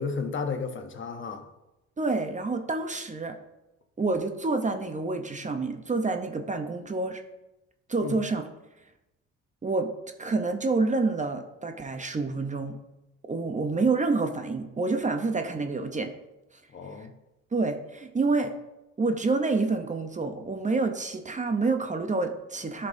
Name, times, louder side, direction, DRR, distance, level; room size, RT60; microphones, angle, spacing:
voice 1, 0.0-1.5 8.0-8.2 16.7-17.1, left 4 dB, 40° left, 7 dB, 0.9 m, -33 dB
voice 2, 2.0-3.4 4.0-7.2 7.9-8.4 9.6-9.9 10.2-12.8 13.3-16.1 16.5-16.6 17.0-17.1 17.5-18.5 19.0-22.9, right 3 dB, 25° right, 6 dB, 0.7 m, -28 dB
11.5 x 5.5 x 2.6 m, 0.96 s
cardioid pair, 90°, 30 cm